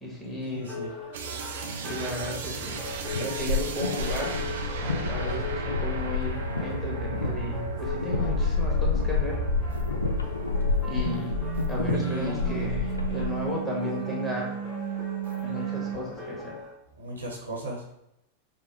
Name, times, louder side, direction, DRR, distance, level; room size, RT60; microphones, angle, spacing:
voice 1, 0.0-0.7 1.8-2.8 3.1-4.3 4.8-9.4 10.8-11.4 11.7-14.6 15.4-16.6, left 1 dB, 5° left, -4 dB, 1.3 m, -34 dB
voice 2, 0.5-0.9 11.9-12.6 17.0-17.9, equal, 75° right, -2 dB, 1.0 m, -35 dB
sound 1, 0.6-16.7, left 3 dB, 30° left, 1.2 m, -41 dB
sound 2, 1.1-10.7 10.9-16.0, right 5 dB, 60° right, 0.5 m, -34 dB
sound 3, 2.7-13.5, left 4 dB, 80° left, 0.4 m, -30 dB
5.3 x 2.1 x 3.3 m, 0.82 s
figure-of-eight pair, 90°, 0 cm